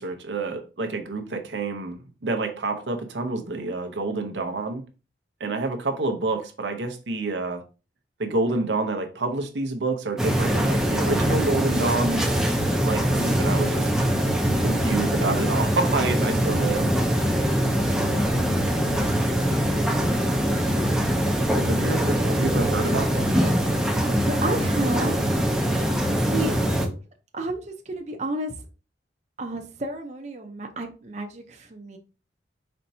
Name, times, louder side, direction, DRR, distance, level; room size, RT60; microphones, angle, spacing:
voice 1, 0.0-4.8 5.4-7.6 8.2-12.3 12.8-13.9 14.6-16.9 21.5-23.6, right 3 dB, 85° right, 0.7 m, -28 dB
sound 1, 10.2-26.9, equal, 5° right, 0.6 m, -23 dB
voice 2, 18.0-19.3 24.2-25.2 26.2-27.0 27.3-28.5 29.4-32.0, right 2 dB, 40° right, 0.6 m, -32 dB
4.3 x 4.3 x 2.7 m
head